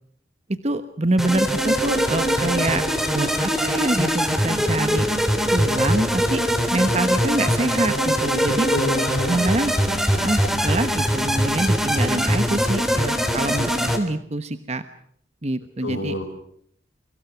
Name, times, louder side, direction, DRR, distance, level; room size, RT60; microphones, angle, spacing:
voice 1, 0.5-2.8 3.1-5.1 5.5-6.4 6.7-8.7 9.2-14.8 15.4-16.1, right 2 dB, 35° right, 10 dB, 1.1 m, -25 dB
sound 1, 1.2-14.0, equal, ahead, 3.5 m, -22 dB
voice 2, 8.7-9.4 15.8-16.2, left 1 dB, 90° left, 0 dB, 4.5 m, -27 dB
29.0 x 25.0 x 6.1 m, 0.64 s
head